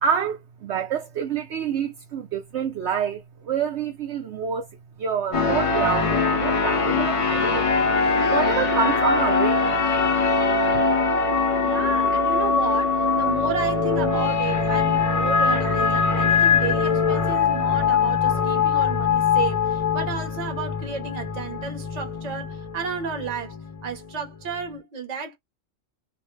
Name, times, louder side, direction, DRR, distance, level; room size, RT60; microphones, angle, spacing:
voice 1, 0.0-4.7 5.0-7.7 8.3-9.7 10.7-10.8, right 7 dB, 70° right, 0.8 m, -27 dB
sound 1, 5.3-24.7, left 4 dB, 45° left, 0.4 m, -22 dB
voice 2, 11.6-23.6 23.8-25.4, right 5 dB, 40° right, 0.8 m, -33 dB
2.5 x 2.1 x 3.0 m
omnidirectional pair, 1.3 m